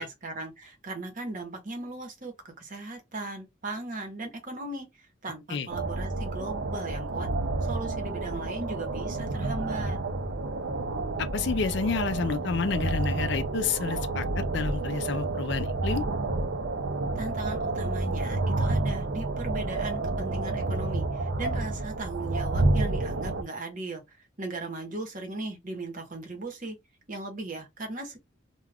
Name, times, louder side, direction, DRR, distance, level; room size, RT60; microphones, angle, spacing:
voice 1, 0.0-7.3 7.6-10.0 17.1-26.8 27.1-28.2, right 2 dB, 45° right, 0.9 m, -37 dB
sound 1, 5.7-23.4, right 2 dB, 60° right, 0.5 m, -30 dB
voice 2, 11.2-16.0, left 5 dB, 60° left, 0.4 m, -30 dB
2.3 x 2.2 x 3.3 m
head